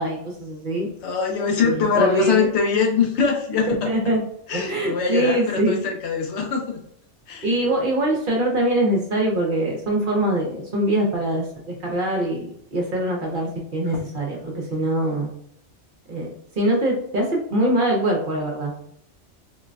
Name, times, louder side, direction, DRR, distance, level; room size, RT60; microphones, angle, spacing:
voice 1, 0.0-0.9 1.6-2.5 3.7-4.2 4.5-5.8 7.4-15.3 16.1-16.3 16.5-18.8, right 1 dB, 50° right, 0 dB, 0.7 m, -23 dB
voice 2, 1.0-3.9 4.5-6.8 7.3-7.5, left 5 dB, 70° left, 2 dB, 0.9 m, -22 dB
3.8 x 2.1 x 2.5 m, 0.70 s
omnidirectional pair, 1.2 m